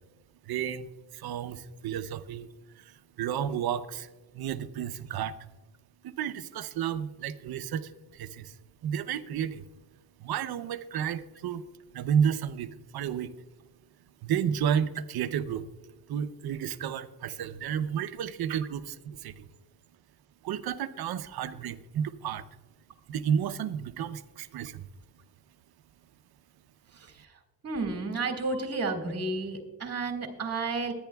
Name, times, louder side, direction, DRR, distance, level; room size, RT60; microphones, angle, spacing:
voice 1, 0.5-2.5 2.8-5.3 6.0-8.5 8.8-9.7 10.2-11.6 11.9-13.3 14.2-15.7 16.1-19.5 20.4-22.4 23.1-24.9, right 8 dB, 70° right, 11 dB, 0.7 m, -32 dB
voice 2, 26.9-27.3 27.6-30.9, right 3 dB, 40° right, 4 dB, 2.0 m, -32 dB
21.5 x 10.0 x 2.3 m, 1.2 s
cardioid pair, 130°, 39 cm